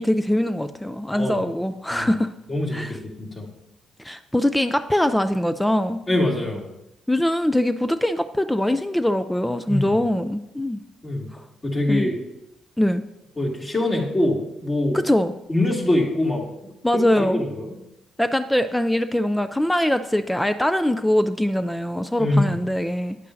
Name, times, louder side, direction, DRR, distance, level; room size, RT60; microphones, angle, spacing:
voice 1, 0.0-2.3 2.7-3.0 4.0-6.0 7.1-10.8 11.3-11.4 11.9-12.1 12.8-13.0 14.9-15.3 16.8-17.4 18.2-23.2, left 1 dB, 5° left, 10 dB, 0.4 m, -22 dB
voice 2, 2.5-3.5 6.1-6.6 9.7-9.9 11.0-11.3 11.6-12.2 13.4-15.0 15.5-16.4 16.9-17.7 22.2-22.6, left 1 dB, 30° left, -1 dB, 2.4 m, -23 dB
9.4 x 8.3 x 2.7 m, 0.88 s
supercardioid pair, 60°, 0 cm